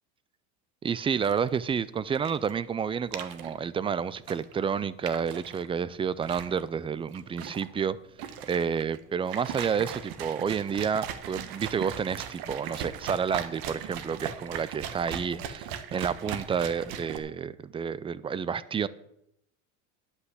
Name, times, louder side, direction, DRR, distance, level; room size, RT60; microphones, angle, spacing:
voice 1, 0.8-8.0 8.4-18.9, right 7 dB, 15° right, 18 dB, 0.3 m, -30 dB
sound 1, 1.2-17.2, right 9 dB, 60° right, 1.3 m, -39 dB
10.5 x 5.7 x 8.1 m, 0.78 s
supercardioid pair, 105°, 40 cm